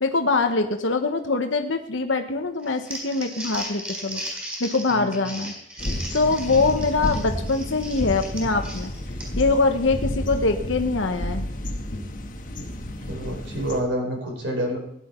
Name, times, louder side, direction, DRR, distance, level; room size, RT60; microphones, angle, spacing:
voice 1, 0.0-4.2 4.6-5.5 6.1-8.9 9.4-11.5, left 3 dB, 85° left, 5 dB, 1.1 m, -23 dB
Crumpling crinkling, 2.6-9.5, right 1 dB, 10° right, 4.8 m, -36 dB
sound 1, 5.8-13.8, left 1 dB, 45° left, 1.4 m, -31 dB
voice 2, 13.1-14.8, equal, 70° right, 1 dB, 4.3 m, -28 dB
16.5 x 10.5 x 4.4 m, 0.72 s
head